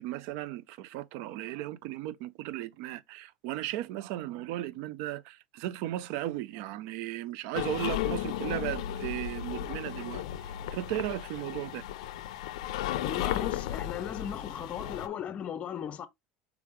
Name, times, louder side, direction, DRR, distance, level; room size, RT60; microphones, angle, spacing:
voice 1, 0.0-10.2 10.7-11.8, right 14 dB, 70° right, 0.4 m, -36 dB
sound 1, 7.5-15.1, left 12 dB, 85° left, 0.4 m, -35 dB
voice 2, 13.0-16.1, left 9 dB, 40° left, 0.6 m, -37 dB
4.7 x 3.4 x 3.1 m
supercardioid pair, 110°, 3 cm